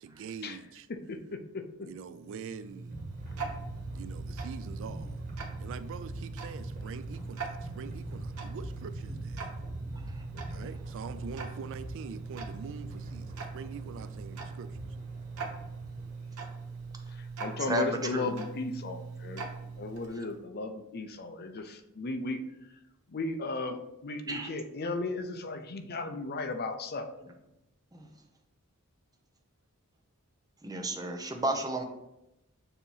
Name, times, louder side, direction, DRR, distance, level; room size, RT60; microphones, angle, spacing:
voice 1, 0.0-0.9 1.9-3.0 3.9-5.2 5.6-9.4 10.5-14.7, right 6 dB, 60° right, 0.3 m, -44 dB
voice 2, 0.9-1.9 10.3-10.7 17.1-19.5 19.8-22.4 23.1-27.1, left 3 dB, 45° left, 0.6 m, -36 dB
Tick-tock, 2.1-20.4, right 4 dB, 80° right, 1.1 m, -42 dB
sound 1, 2.9-16.9, equal, 40° right, 1.5 m, -43 dB
voice 3, 17.7-18.3 24.3-24.5 27.9-28.1 30.6-31.8, right 1 dB, 15° right, 0.8 m, -32 dB
6.9 x 2.9 x 5.5 m
head